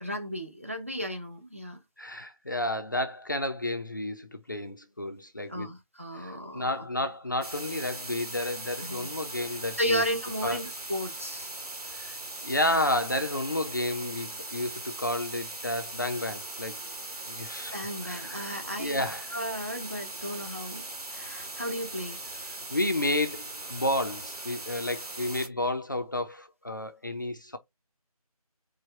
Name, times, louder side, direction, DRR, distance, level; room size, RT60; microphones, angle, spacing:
voice 1, 0.0-1.8 5.5-6.7 8.8-9.1 9.7-11.5 17.7-19.0 19.3-20.9 21.1-22.2, equal, 20° right, 0.5 m, -34 dB
voice 2, 2.0-5.7 6.2-10.0 10.4-10.6 11.9-12.2 12.4-16.8 17.3-17.8 18.0-19.4 22.7-27.6, left 1 dB, 30° left, 0.5 m, -31 dB
sound 1, 7.4-25.5, right 2 dB, 80° right, 1.4 m, -40 dB
4.8 x 2.2 x 4.2 m
figure-of-eight pair, 170°, 19 cm